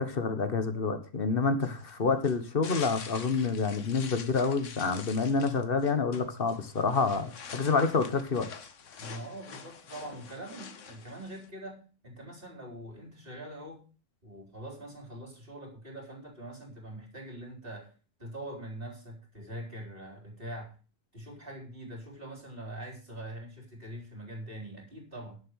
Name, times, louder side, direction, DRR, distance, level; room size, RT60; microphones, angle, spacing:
voice 1, 0.0-8.5, left 4 dB, 40° left, 10 dB, 1.6 m, -28 dB
sound 1, 1.6-11.5, left 6 dB, 55° left, 1.4 m, -46 dB
voice 2, 9.0-13.8 14.2-17.9 18.2-20.8 21.1-25.4, right 1 dB, 35° right, 0 dB, 4.3 m, -43 dB
11.0 x 7.2 x 6.5 m, 0.35 s
omnidirectional pair, 1.6 m